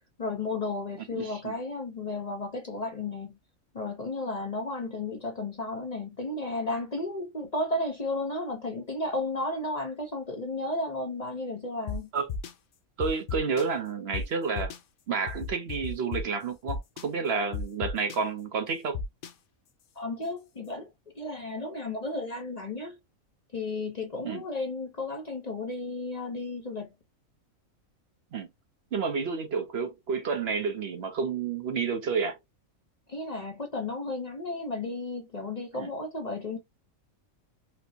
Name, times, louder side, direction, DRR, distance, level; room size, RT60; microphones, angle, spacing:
voice 1, 0.2-3.3 3.7-12.1 20.0-20.9 21.2-23.0 23.5-26.9 33.1-36.6, left 2 dB, 40° left, 0.6 m, -33 dB
voice 2, 1.2-1.5 12.1-12.3 13.0-14.7 15.1-19.0 24.2-24.4 28.3-28.5 28.9-32.4 35.7-35.9, right 5 dB, 55° right, 0.8 m, -30 dB
sound 1, 11.9-12.0 12.3-12.5 13.0-13.6 14.1-14.2 14.6-14.8 15.3-16.2 16.7-17.0 17.5-18.2 18.9-19.3, left 5 dB, 85° left, 0.4 m, -33 dB
4.3 x 2.0 x 2.7 m
omnidirectional pair, 1.5 m